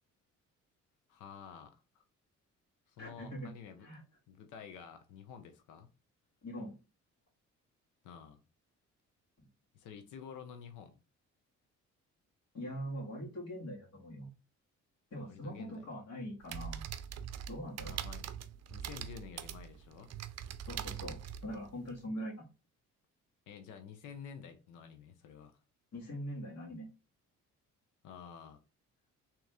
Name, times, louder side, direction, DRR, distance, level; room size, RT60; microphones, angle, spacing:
voice 1, 1.1-2.0 2.9-3.9 4.3-5.9 8.0-8.4 9.7-10.9 15.2-15.9 17.8-18.3 18.7-20.1 23.5-25.6 28.0-28.6, left 7 dB, 90° left, 0.7 m, -50 dB
voice 2, 3.0-3.5 3.8-4.0 6.4-6.8 12.5-14.3 15.1-16.9 17.5-18.0 20.7-22.5 25.9-26.9, equal, 60° left, 1.9 m, -42 dB
sound 1, 16.4-22.0, right 9 dB, 55° right, 0.5 m, -43 dB
3.5 x 3.0 x 3.4 m
cardioid pair, 90°, 30 cm